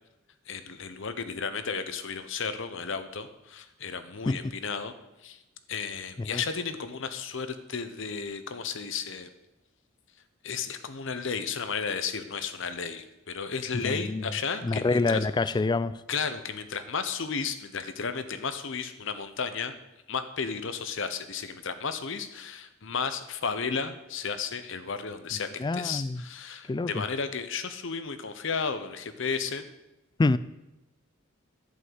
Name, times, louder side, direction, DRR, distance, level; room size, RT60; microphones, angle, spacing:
voice 1, 0.5-4.9 5.2-5.4 5.7-9.3 10.4-15.2 16.1-19.7 20.1-29.6, left 5 dB, 65° left, 10 dB, 0.9 m, -33 dB
voice 2, 13.8-14.2 14.6-16.0 25.6-26.2 26.7-27.0 30.2-30.4, left 3 dB, 20° left, 16 dB, 0.3 m, -26 dB
11.5 x 5.5 x 8.0 m, 0.96 s
head